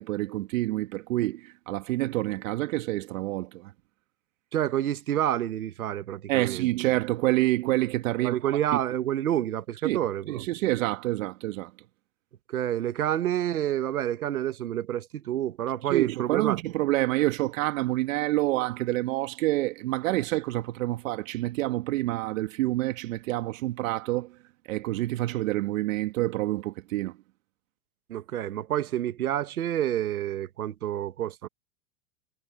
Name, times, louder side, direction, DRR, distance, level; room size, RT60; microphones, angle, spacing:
voice 1, 0.0-3.7 6.3-8.6 9.8-10.0 10.3-11.7 15.8-24.3 24.7-27.1, right 17 dB, 65° right, 1.7 m, -27 dB
voice 2, 4.5-6.7 8.2-10.4 12.5-16.6 28.1-31.5, right 11 dB, 80° right, 1.6 m, -28 dB
hypercardioid pair, 110°, 43 cm